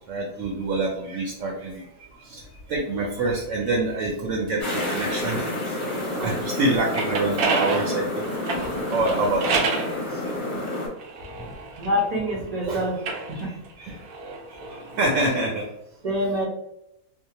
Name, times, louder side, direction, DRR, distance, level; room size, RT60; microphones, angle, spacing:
voice 1, 0.1-1.8 2.2-2.4 2.7-9.5 9.8-10.3 12.6-12.9 13.4-14.0 14.5-15.7, right 2 dB, 65° right, -2 dB, 0.9 m, -27 dB
sound 1, 4.6-10.9, left 1 dB, 35° left, 0.9 m, -29 dB
sound 2, 6.7-9.9 10.7-12.4 12.9-15.2, right 4 dB, 90° right, 1.1 m, -29 dB
voice 2, 11.8-13.0 13.3-13.5 16.0-16.5, equal, 40° right, -4 dB, 0.6 m, -25 dB
2.7 x 2.1 x 2.8 m, 0.83 s
omnidirectional pair, 1.6 m